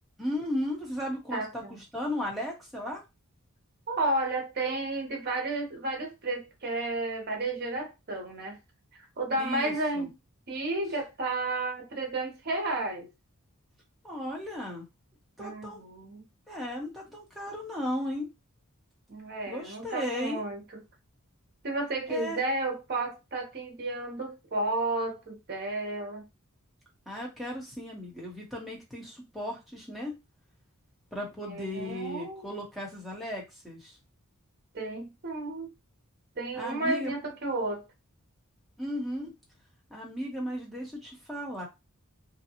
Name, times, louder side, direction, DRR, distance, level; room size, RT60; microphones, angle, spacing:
voice 1, 0.2-3.0 9.4-10.1 14.0-14.9 15.4-15.8 16.5-18.3 19.5-20.4 22.1-22.4 27.1-30.2 31.1-34.0 36.6-37.1 38.8-39.3 39.9-41.7, left 1 dB, ahead, 1.0 m, -35 dB
voice 2, 1.3-1.8 3.9-8.6 9.2-10.1 10.5-13.1 15.4-16.2 19.1-20.8 21.6-26.2 31.5-32.5 34.7-35.7 36.4-37.8, right 2 dB, 45° right, 0.8 m, -32 dB
2.7 x 2.3 x 2.8 m
head